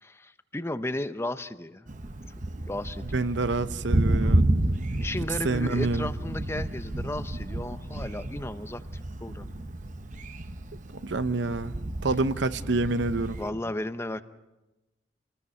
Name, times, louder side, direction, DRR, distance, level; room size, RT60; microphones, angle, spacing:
voice 1, 0.0-1.9 2.7-3.1 4.2-4.4 5.0-8.8 9.2-9.6 12.6-12.7 13.4-14.2, left 1 dB, 15° left, 0.7 m, -34 dB
Thunder, 1.9-13.5, right 1 dB, 45° right, 1.0 m, -30 dB
voice 2, 3.0-4.4 5.4-6.1 11.0-11.8 12.0-13.4, right 3 dB, 80° right, 0.8 m, -27 dB
28.0 x 19.5 x 5.6 m
head